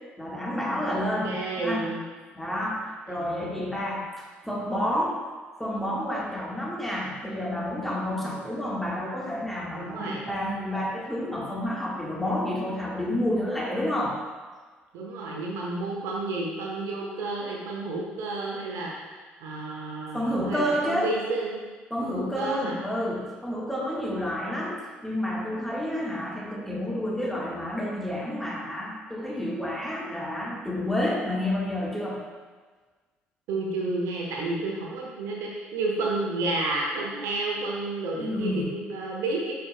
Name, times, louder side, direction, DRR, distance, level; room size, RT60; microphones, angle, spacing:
voice 1, 0.2-1.9 2.3-5.2 5.6-14.2 20.1-21.1 21.9-32.2 38.2-38.7, left 1 dB, 5° left, -3 dB, 1.4 m, -29 dB
voice 2, 0.8-2.0 3.1-3.8 8.2-8.4 9.7-10.2 14.9-21.6 22.0-22.8 33.5-39.6, right 2 dB, 60° right, -2 dB, 1.0 m, -31 dB
9.9 x 4.7 x 2.2 m, 1.4 s
figure-of-eight pair, 50°, 5 cm